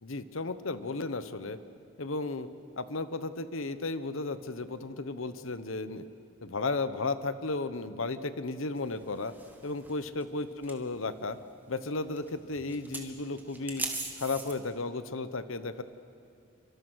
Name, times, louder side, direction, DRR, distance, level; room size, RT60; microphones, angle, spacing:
voice 1, 0.0-1.6 2.0-2.5 2.8-6.0 6.4-9.3 9.6-11.4 11.7-13.8 14.2-15.8, left 3 dB, 75° left, 12 dB, 1.0 m, -34 dB
sound 1, 8.8-14.6, right 3 dB, 10° right, 1.9 m, -42 dB
28.5 x 25.0 x 6.3 m, 2.4 s
head